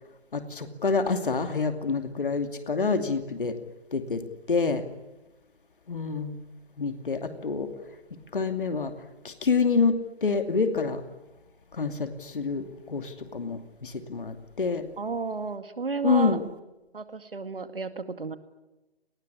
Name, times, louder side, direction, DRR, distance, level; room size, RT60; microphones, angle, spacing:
voice 1, 0.3-3.5 3.9-4.2 4.5-4.8 5.9-6.4 6.8-7.7 8.3-8.9 9.2-11.0 11.7-14.8 16.0-16.4, left 4 dB, 55° left, 8 dB, 2.7 m, -27 dB
voice 2, 15.0-16.4 16.9-18.4, right 4 dB, 60° right, 10 dB, 2.2 m, -32 dB
28.0 x 20.5 x 10.0 m, 1.0 s
figure-of-eight pair, 150°, 32 cm